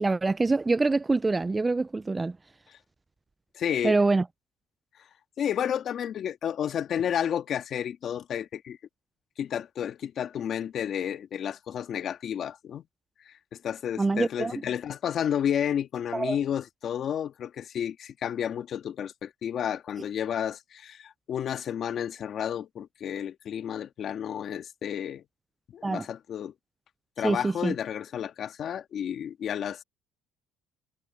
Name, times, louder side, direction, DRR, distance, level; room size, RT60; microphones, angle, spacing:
voice 1, 0.0-2.4 3.8-4.2 14.0-14.5 16.1-16.4 25.8-26.0 27.2-27.7, right 3 dB, 15° right, 0.3 m, -25 dB
voice 2, 3.5-4.0 5.4-8.8 9.4-12.8 13.3-25.2 25.7-26.5 27.2-29.8, left 9 dB, 50° left, 1.9 m, -31 dB
cardioid pair, 105°, 0 cm